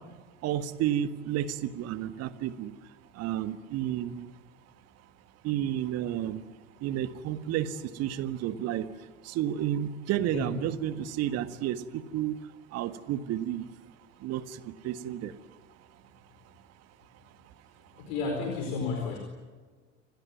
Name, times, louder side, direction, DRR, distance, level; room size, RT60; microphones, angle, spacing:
voice 1, 0.4-2.7 3.2-4.3 5.4-6.4 6.8-8.9 9.2-12.4 12.7-13.6 14.2-15.3, right 11 dB, 40° right, 12 dB, 1.6 m, -31 dB
voice 2, 18.0-19.2, left 4 dB, 55° left, 3 dB, 4.5 m, -32 dB
28.0 x 19.5 x 9.6 m, 1.4 s
figure-of-eight pair, 75°, 38 cm